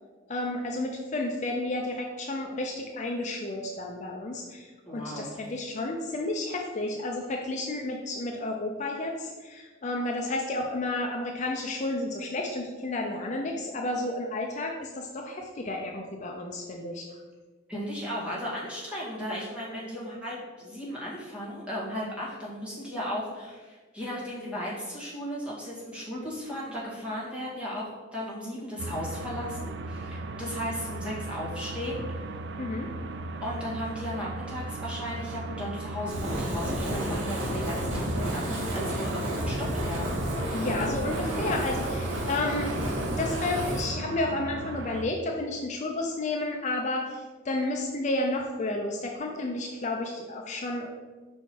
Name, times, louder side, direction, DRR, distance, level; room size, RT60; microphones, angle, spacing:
voice 1, 0.3-17.1 32.6-32.9 40.5-42.7 43.2-50.9, left 2 dB, 40° left, 1 dB, 0.5 m, -31 dB
voice 2, 4.9-5.4 17.7-32.4 33.4-40.2, equal, 5° right, -7 dB, 1.8 m, -36 dB
sound 1, 28.8-45.0, right 2 dB, 60° right, 0.4 m, -37 dB
Fire, 36.0-43.9, equal, 85° right, 1.3 m, -31 dB
5.4 x 4.4 x 4.6 m, 1.3 s
head